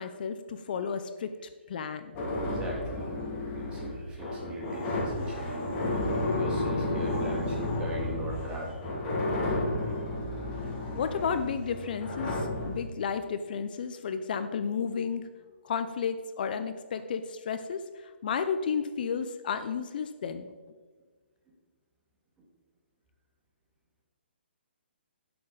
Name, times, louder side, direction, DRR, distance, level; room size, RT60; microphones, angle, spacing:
voice 1, 0.0-1.3 1.7-2.2 11.0-15.3 15.6-20.5, left 6 dB, 50° left, 10 dB, 0.6 m, -32 dB
sound 1, 2.1-12.8, left 2 dB, 25° left, 2.5 m, -32 dB
voice 2, 2.4-3.1 3.6-8.9, right 1 dB, 15° right, -1 dB, 2.2 m, -39 dB
12.0 x 6.9 x 4.0 m, 1.5 s
hypercardioid pair, 140°, 6 cm